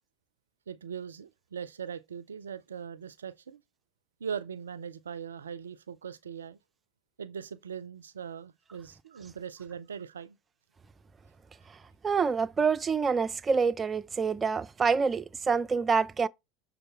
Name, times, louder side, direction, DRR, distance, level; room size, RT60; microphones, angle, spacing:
voice 1, 0.7-3.6 4.2-6.6 7.2-10.4, right 7 dB, 80° right, 0.4 m, -40 dB
voice 2, 12.0-16.3, right 5 dB, 25° right, 0.5 m, -27 dB
6.6 x 3.9 x 4.1 m
figure-of-eight pair, 70°, 0 cm